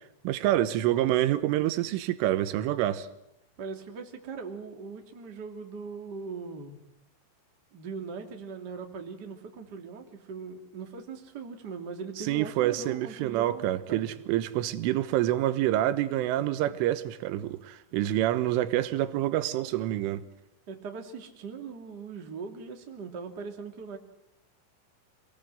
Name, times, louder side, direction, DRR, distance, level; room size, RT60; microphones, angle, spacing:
voice 1, 0.3-3.1 12.3-20.2, right 13 dB, 85° right, 3.6 m, -27 dB
voice 2, 3.6-6.8 7.7-14.1 16.7-16.8 20.7-24.0, right 5 dB, 30° right, 2.1 m, -40 dB
27.0 x 20.0 x 7.7 m
omnidirectional pair, 5.7 m